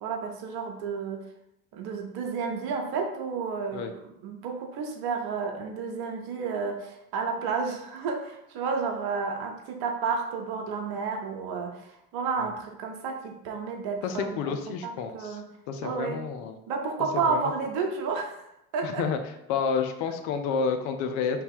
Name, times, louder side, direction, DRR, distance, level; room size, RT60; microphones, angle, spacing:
voice 1, 0.0-1.2 1.7-14.6 14.8-15.4 15.8-16.2 16.7-18.4 18.7-19.0, right 5 dB, 60° right, 3 dB, 0.8 m, -31 dB
voice 2, 14.0-15.4 15.7-16.6 17.3-17.5 18.8-19.2 19.5-21.4, left 6 dB, 70° left, 7 dB, 0.6 m, -30 dB
2.9 x 2.7 x 3.6 m, 0.81 s
hypercardioid pair, 60°, 42 cm